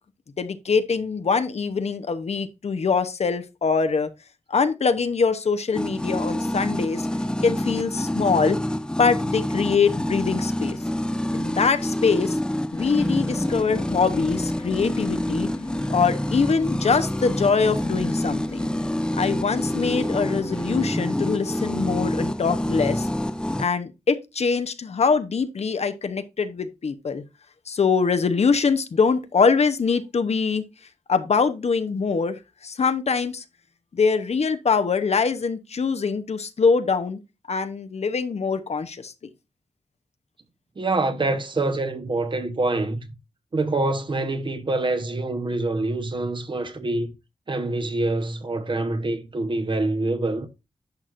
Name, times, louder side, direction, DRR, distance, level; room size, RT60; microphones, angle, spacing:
voice 1, 0.4-4.1 4.5-7.0 7.4-8.6 9.0-10.8 11.3-12.4 12.7-15.5 15.9-18.7 19.2-23.1 23.6-27.2 27.7-30.6 31.1-33.4 33.9-37.2 37.5-39.1, left 5 dB, 65° left, 0.8 m, -23 dB
sound 1, 5.7-23.6, left 1 dB, 5° left, 0.5 m, -27 dB
sound 2, 12.7-20.9, left 2 dB, 25° left, 1.1 m, -38 dB
voice 2, 40.8-43.1 43.5-47.1 47.5-50.5, right 2 dB, 45° right, 1.0 m, -25 dB
10.5 x 6.0 x 2.5 m
wide cardioid pair, 100°, 12 cm